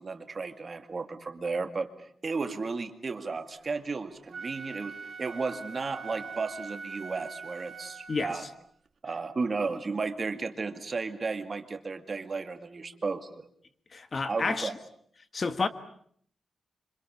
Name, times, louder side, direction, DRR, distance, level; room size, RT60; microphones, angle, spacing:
voice 1, 0.0-8.4 9.0-13.5 14.3-14.7, right 4 dB, 35° right, 2.2 m, -34 dB
Wind instrument woodwind instrument, 4.2-8.6, right 5 dB, 60° right, 1.9 m, -43 dB
voice 2, 13.9-14.7 15.3-15.7, left 4 dB, 40° left, 1.5 m, -29 dB
28.0 x 26.0 x 7.2 m
wide cardioid pair, 135°, 0 cm